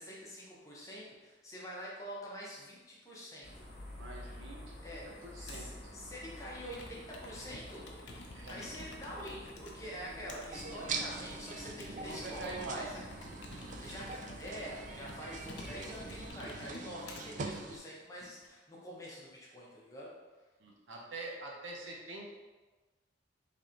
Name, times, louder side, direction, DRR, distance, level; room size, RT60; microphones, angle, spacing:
voice 1, 0.0-3.7 4.8-7.9 8.5-12.9 13.8-20.2, equal, 15° left, -5 dB, 0.8 m, -46 dB
sound 1, 3.4-16.3, left 1 dB, 50° left, 0.9 m, -50 dB
voice 2, 4.0-5.9 8.3-8.6 12.0-12.9 20.6-22.2, right 2 dB, 80° right, -1 dB, 0.8 m, -44 dB
Computer keyboard, 5.5-5.8 6.5-9.7 10.3-17.2 17.9-18.5, left 2 dB, 65° left, 0.6 m, -51 dB
sound 2, 10.5-17.8, right 4 dB, 40° right, 0.3 m, -43 dB
3.4 x 3.0 x 3.8 m, 1.2 s
head